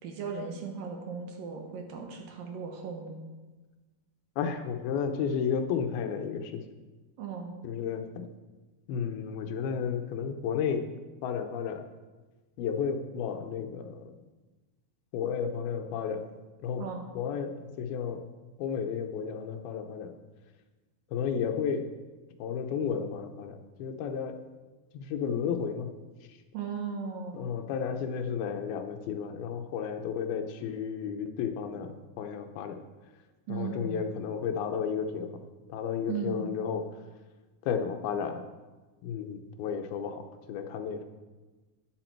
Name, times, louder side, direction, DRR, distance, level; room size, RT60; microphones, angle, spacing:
voice 1, 0.0-3.2 7.2-7.5 16.8-17.1 26.5-27.4 33.5-34.0 36.1-36.5, right 5 dB, 70° right, 3 dB, 2.9 m, -37 dB
voice 2, 4.4-6.6 7.6-8.3 8.9-10.9 11.2-11.8 12.6-14.1 15.1-16.2 16.6-16.8 17.1-18.2 18.6-20.1 21.1-21.9 22.4-24.4 24.9-25.9 26.3-26.4 27.3-32.8 33.5-35.4 35.7-36.9 37.6-38.5 39.0-41.0, left 7 dB, 85° left, 6 dB, 2.8 m, -32 dB
12.0 x 9.7 x 4.6 m, 1.2 s
omnidirectional pair, 4.3 m